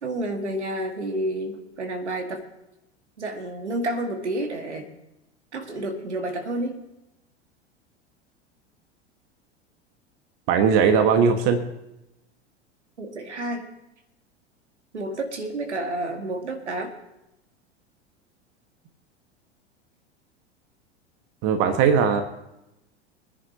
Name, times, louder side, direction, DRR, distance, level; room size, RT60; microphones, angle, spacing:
voice 1, 0.0-2.5 3.2-4.9 5.5-6.8 13.0-13.7 14.9-16.9, right 1 dB, 80° right, 4 dB, 1.9 m, -30 dB
voice 2, 10.5-11.6 21.4-22.2, right 6 dB, 45° right, 6 dB, 1.5 m, -19 dB
24.5 x 10.0 x 2.8 m, 0.89 s
figure-of-eight pair, 85°, 34 cm